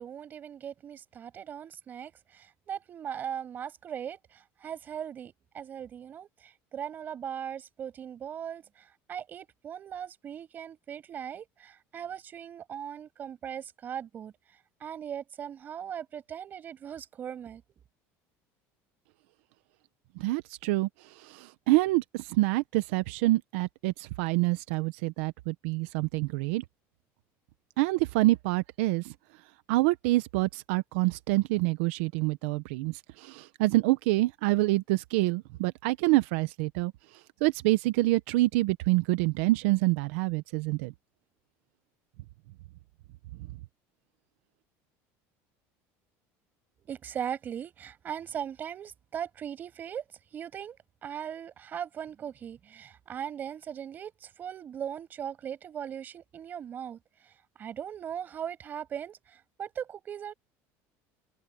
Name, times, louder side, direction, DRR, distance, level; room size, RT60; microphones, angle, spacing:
voice 1, 0.0-14.3 14.8-17.6 46.8-50.0 50.3-50.8 51.0-57.3 57.6-60.3, right 9 dB, 30° right, 6.3 m, -39 dB
voice 2, 20.2-26.6 27.8-29.1 29.7-36.9 37.4-40.9, right 20 dB, 90° right, 0.9 m, -27 dB
cardioid pair, 170°, 7 cm